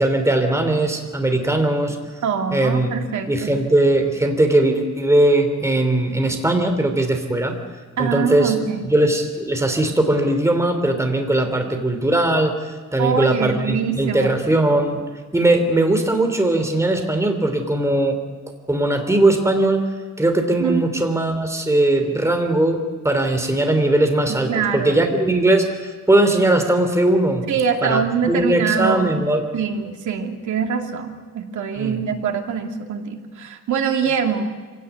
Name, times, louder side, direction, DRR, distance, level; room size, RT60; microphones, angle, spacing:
voice 1, 0.0-2.0 2.5-2.9 3.3-7.6 8.0-8.5 8.9-12.5 12.9-15.0 15.3-18.2 18.7-19.8 20.2-27.4 27.8-29.4 31.8-32.0, right 1 dB, 10° right, 5 dB, 3.1 m, -19 dB
voice 2, 2.2-3.5 8.0-8.9 13.0-14.4 20.6-20.9 24.5-25.0 27.5-29.1 29.5-34.5, right 6 dB, 85° right, 3 dB, 2.6 m, -24 dB
25.0 x 17.0 x 9.5 m, 1.5 s
wide cardioid pair, 150°, 29 cm